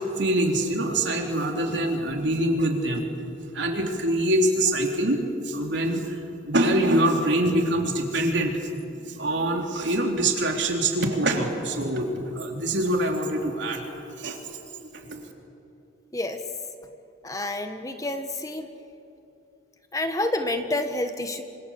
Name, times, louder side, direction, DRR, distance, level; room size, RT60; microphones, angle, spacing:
voice 1, 0.2-5.2 5.4-8.6 9.1-13.8 14.2-15.3, right 1 dB, 70° right, 2 dB, 3.4 m, -25 dB
voice 2, 17.2-18.7 19.9-21.4, left 1 dB, 15° left, 7 dB, 1.3 m, -28 dB
26.5 x 26.0 x 7.2 m, 2.8 s
head